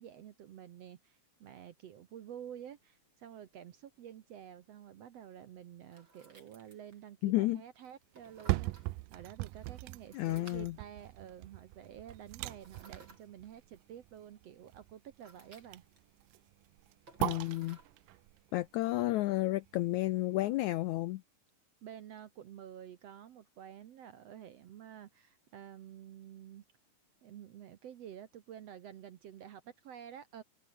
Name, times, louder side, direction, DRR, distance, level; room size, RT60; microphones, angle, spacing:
voice 1, 0.0-15.8 21.8-26.6 27.2-30.4, right 10 dB, 65° right, 1.7 m, -50 dB
sound 1, 2.4-19.9, right 3 dB, 30° right, 5.8 m, -63 dB
voice 2, 7.2-7.6 10.1-10.7 17.2-17.8 18.5-21.2, left 17 dB, 80° left, 1.7 m, -31 dB
sound 2, 8.2-20.2 20.7-20.8, right 20 dB, 80° right, 2.2 m, -41 dB
omnidirectional pair, 4.0 m